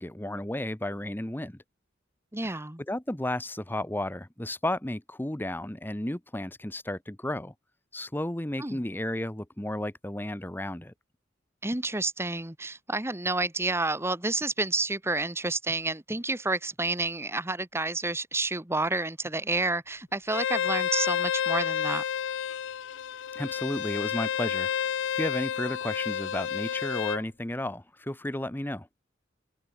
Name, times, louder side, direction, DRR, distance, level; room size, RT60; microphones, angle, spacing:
voice 1, 0.0-1.6 2.4-2.5 2.9-7.5 7.9-10.9 23.3-24.7 25.2-28.9, left 1 dB, 10° left, 1.0 m, -33 dB
voice 2, 2.3-2.8 8.6-8.8 11.6-22.0, right 2 dB, 15° right, 1.6 m, -30 dB
Bowed string instrument, 20.3-27.2, left 8 dB, 70° left, 0.4 m, -30 dB
head